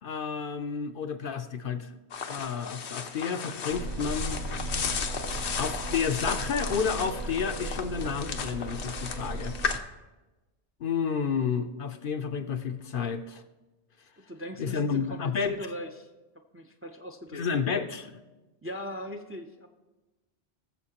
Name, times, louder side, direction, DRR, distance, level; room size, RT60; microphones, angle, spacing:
voice 1, 0.0-1.9 2.3-4.4 5.6-9.6 10.8-13.4 14.6-15.5 17.3-18.2, left 6 dB, 60° left, 8 dB, 0.7 m, -31 dB
sound 1, 2.1-9.8, left 6 dB, 85° left, 1.1 m, -35 dB
sound 2, 3.7-9.8, right 2 dB, 45° right, 0.7 m, -36 dB
voice 2, 14.3-16.1 16.5-17.4 18.6-19.7, left 1 dB, 15° right, 5 dB, 0.5 m, -39 dB
20.5 x 7.1 x 2.9 m, 1.1 s
omnidirectional pair, 1.1 m